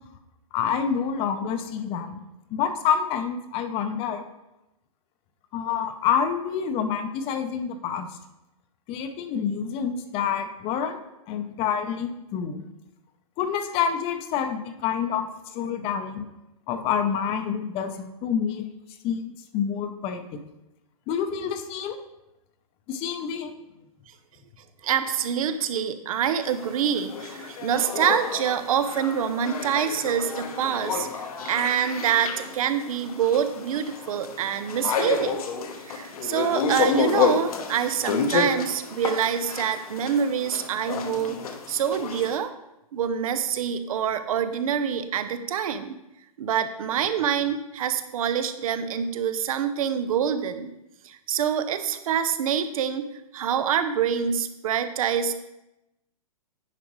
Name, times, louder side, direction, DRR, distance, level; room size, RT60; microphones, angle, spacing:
voice 1, 0.5-2.2 2.5-4.2 5.5-8.1 8.9-11.0 11.3-12.6 13.4-15.3 15.5-16.3 16.7-18.7 19.0-20.4 21.1-22.0 22.9-23.5, left 7 dB, 30° left, 9 dB, 0.7 m, -27 dB
voice 2, 24.8-35.4 35.8-41.4 41.7-42.5 42.9-45.9 46.4-50.7 51.0-53.1 53.3-55.3, right 8 dB, 65° right, 10 dB, 0.7 m, -26 dB
sound 1, 26.4-42.4, left 5 dB, 70° left, 1.1 m, -30 dB
10.0 x 5.0 x 3.1 m, 0.92 s
hypercardioid pair, 135°, 19 cm